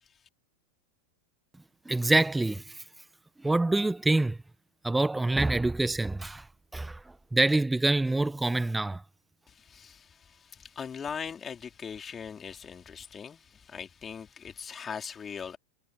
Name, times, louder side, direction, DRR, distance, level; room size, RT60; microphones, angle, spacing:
voice 1, 1.9-2.7 3.4-4.4 4.8-6.4 6.7-7.0 7.3-9.0, right 2 dB, 5° right, 1.0 m, -26 dB
voice 2, 9.5-15.6, left 7 dB, 20° left, 4.2 m, -40 dB
figure-of-eight pair, 90°, 0 cm